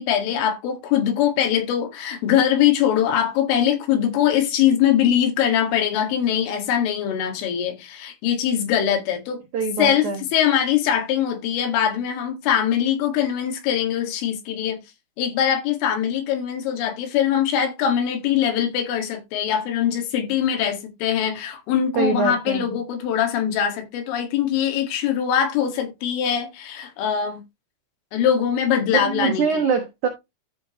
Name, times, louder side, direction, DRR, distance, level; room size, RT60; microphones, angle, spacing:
voice 1, 0.0-9.4 9.8-14.8 15.2-27.4 28.1-29.6, left 9 dB, 90° left, 4.4 m, -22 dB
voice 2, 9.5-10.2 21.9-22.8 29.0-30.1, right 5 dB, 90° right, 1.7 m, -23 dB
13.5 x 5.0 x 2.9 m
omnidirectional pair, 5.5 m